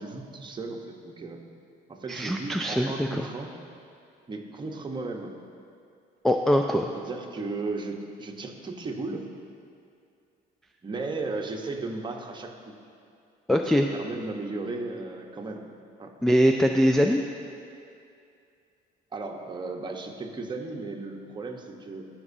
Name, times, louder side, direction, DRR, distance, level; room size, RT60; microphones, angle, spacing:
voice 1, 0.0-1.4 1.9-3.5 4.3-5.3 6.9-9.3 10.8-12.5 13.5-15.6 16.0-16.1 19.1-22.0, right 3 dB, 25° right, 2 dB, 1.0 m, -35 dB
voice 2, 2.1-3.3 6.2-6.9 13.5-13.9 16.2-17.2, equal, ahead, 3 dB, 0.3 m, -22 dB
18.0 x 6.0 x 2.7 m, 2.4 s
cardioid pair, 110°, 17 cm